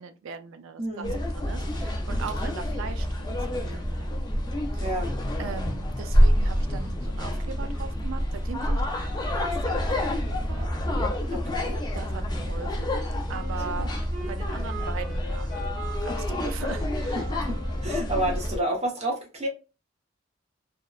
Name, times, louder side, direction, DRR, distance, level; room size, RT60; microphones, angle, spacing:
voice 1, 0.0-1.1 1.3-4.1 4.7-4.9 5.4-10.7 11.1-11.3 11.9-13.0 13.3-13.9 14.2-17.2, right 5 dB, 80° right, 0.4 m, -40 dB
voice 2, 0.8-1.2 4.8-5.1 11.3-11.8 13.8-13.9 17.5-19.5, right 1 dB, 30° right, 0.8 m, -30 dB
sound 1, 1.0-18.6, equal, 20° left, 0.4 m, -27 dB
Wind instrument woodwind instrument, 13.3-18.3, right 1 dB, 60° right, 1.0 m, -42 dB
2.8 x 2.0 x 2.3 m
head